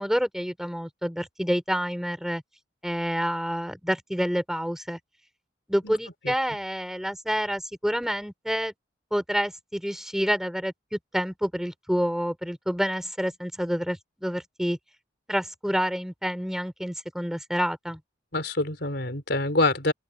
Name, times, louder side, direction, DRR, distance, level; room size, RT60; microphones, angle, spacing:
voice 1, 0.0-2.4 2.8-5.0 5.7-8.7 9.1-14.8 15.3-18.0, equal, ahead, 4.1 m, -28 dB
voice 2, 18.3-19.9, left 2 dB, 60° left, 4.8 m, -25 dB
open air
head